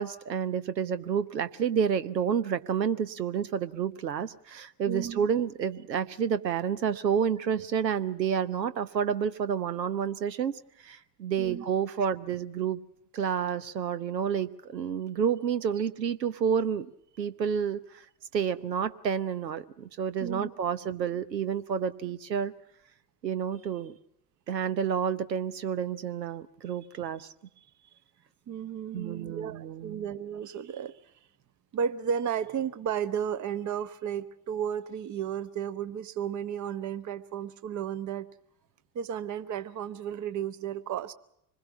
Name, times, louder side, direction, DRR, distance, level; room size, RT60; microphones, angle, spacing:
voice 1, 0.0-12.8 13.1-16.9 17.2-17.8 18.3-22.5 23.2-24.0 24.5-27.3 28.9-30.1, right 7 dB, 80° right, 14 dB, 1.0 m, -29 dB
voice 2, 4.9-5.2 11.4-11.7 20.2-20.5 27.6-27.7 28.5-31.0 31.7-38.3 38.9-41.1, right 8 dB, 35° right, 13 dB, 1.2 m, -33 dB
25.5 x 21.0 x 6.1 m, 0.76 s
figure-of-eight pair, 60°, 49 cm